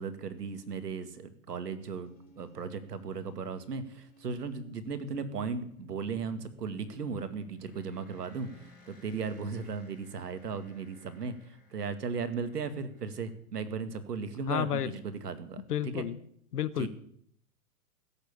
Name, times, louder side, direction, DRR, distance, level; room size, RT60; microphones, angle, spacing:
voice 1, 0.0-8.5 8.9-16.0 16.8-16.9, right 5 dB, 85° right, 10 dB, 2.3 m, -36 dB
sound 1, 1.8-13.4, left 3 dB, 15° left, 5.8 m, -58 dB
voice 2, 14.5-14.9 15.7-16.2 16.5-16.9, left 10 dB, 80° left, 15 dB, 1.3 m, -31 dB
17.0 x 8.2 x 8.7 m, 0.67 s
hypercardioid pair, 135°, 46 cm